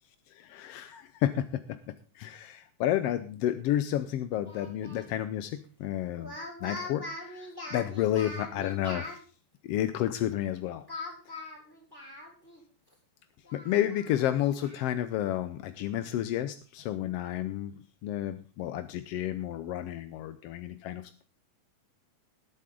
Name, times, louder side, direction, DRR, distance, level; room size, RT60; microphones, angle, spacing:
voice 1, 0.3-9.2 9.6-10.8 13.5-17.8 18.0-21.3, left 12 dB, 75° left, 10 dB, 1.4 m, -31 dB
Speech, 4.5-5.1 6.1-9.2 10.9-12.6 12.9-13.0 13.5-14.9, left 2 dB, 5° left, 3.6 m, -42 dB
19.5 x 8.0 x 3.8 m, 0.37 s
omnidirectional pair, 3.5 m